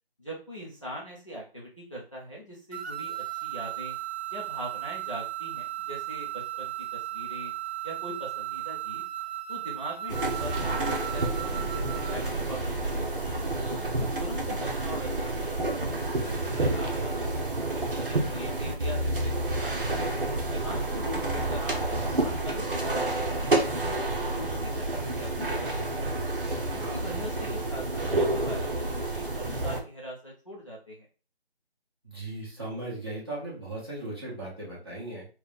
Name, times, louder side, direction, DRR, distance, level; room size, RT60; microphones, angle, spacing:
voice 1, 0.2-4.0 4.3-7.5 7.8-9.0 9.5-13.5 14.0-16.0 16.6-17.1 17.6-20.1 20.5-24.0 24.3-26.2 26.7-31.1, equal, 30° left, -5 dB, 0.7 m, -42 dB
sound 1, 2.7-12.3, right 15 dB, 85° right, 0.6 m, -36 dB
sound 2, 10.1-29.8, right 2 dB, 55° right, 0.9 m, -29 dB
voice 2, 16.2-16.6 26.4-27.0 32.0-35.3, right 2 dB, 25° right, -7 dB, 1.2 m, -38 dB
3.6 x 2.3 x 3.5 m, 0.36 s
figure-of-eight pair, 170°, 32 cm